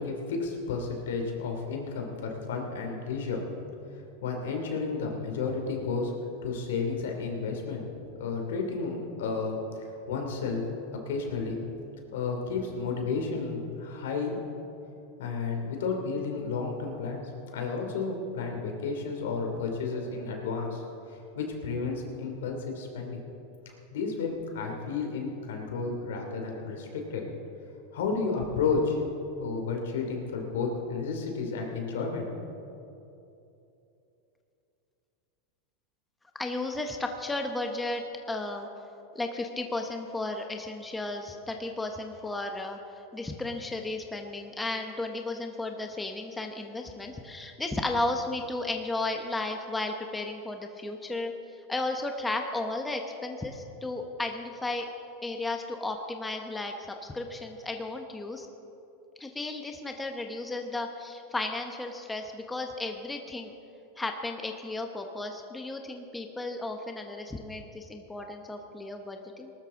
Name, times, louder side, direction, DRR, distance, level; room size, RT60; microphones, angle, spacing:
voice 1, 0.0-3.4 4.2-6.1 6.4-7.8 8.2-10.6 10.9-11.6 12.1-14.4 15.2-17.2 17.5-20.8 21.1-23.2 23.6-27.2 27.9-29.0 29.4-32.3, left 4 dB, 85° left, 2 dB, 2.8 m, -32 dB
voice 2, 36.4-38.0 38.3-38.7 39.1-42.8 43.1-51.3 51.7-54.9 55.2-58.5 59.2-63.5 64.0-69.5, left 2 dB, 10° left, 4 dB, 0.9 m, -34 dB
19.5 x 13.0 x 3.8 m, 2.9 s
supercardioid pair, 135°, 0 cm